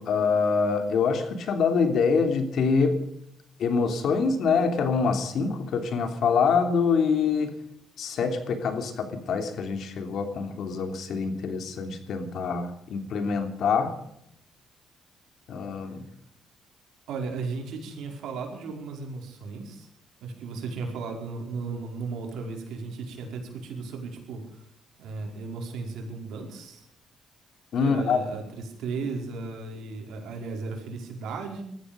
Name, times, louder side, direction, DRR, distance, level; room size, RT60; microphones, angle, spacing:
voice 1, 0.0-3.0 3.6-7.5 8.0-13.9 15.5-16.1 27.7-28.2, left 5 dB, 70° left, 7 dB, 3.1 m, -25 dB
voice 2, 17.1-19.9 20.2-24.4 25.0-26.9 27.8-31.6, right 4 dB, 80° right, 2 dB, 5.0 m, -35 dB
19.5 x 14.0 x 5.2 m, 0.76 s
cardioid pair, 90°, 0 cm